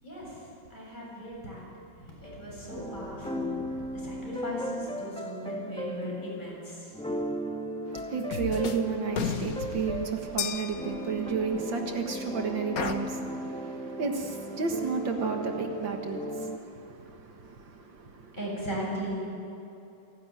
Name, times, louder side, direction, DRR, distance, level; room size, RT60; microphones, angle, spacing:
voice 1, 0.0-1.7 2.0-6.9 18.3-19.3, equal, 25° left, 7.8 m, -37 dB
sound 1, 2.2-16.6, equal, 5° left, 1.0 m, -37 dB
voice 2, 7.9-18.4, right 5 dB, 75° right, 2.3 m, -32 dB
sound 2, 8.0-8.1 8.3-8.9 9.1-12.3 12.8-12.9, left 6 dB, 50° left, 1.5 m, -35 dB
sound 3, 10.4-11.8, left 10 dB, 85° left, 1.6 m, -37 dB
27.5 x 12.0 x 9.1 m
omnidirectional pair, 2.1 m